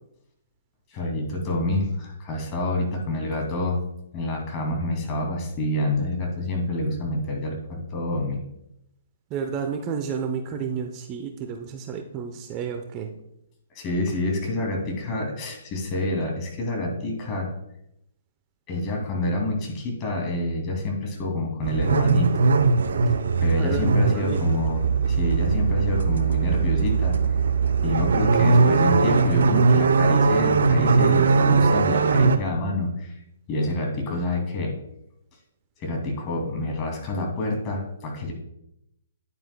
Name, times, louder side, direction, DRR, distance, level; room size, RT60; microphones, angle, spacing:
voice 1, 0.9-3.8 4.1-8.4 13.7-17.5 18.7-22.5 23.1-23.2 23.4-27.2 27.8-33.1 33.5-34.8 35.8-38.3, left 1 dB, 30° left, 1 dB, 2.4 m, -27 dB
voice 2, 9.3-13.1 23.5-24.6, right 6 dB, 30° right, 6 dB, 0.7 m, -31 dB
sound 1, 21.6-32.4, right 4 dB, 65° right, 0.6 m, -20 dB
9.9 x 9.1 x 2.2 m, 0.81 s
figure-of-eight pair, 130°, 0 cm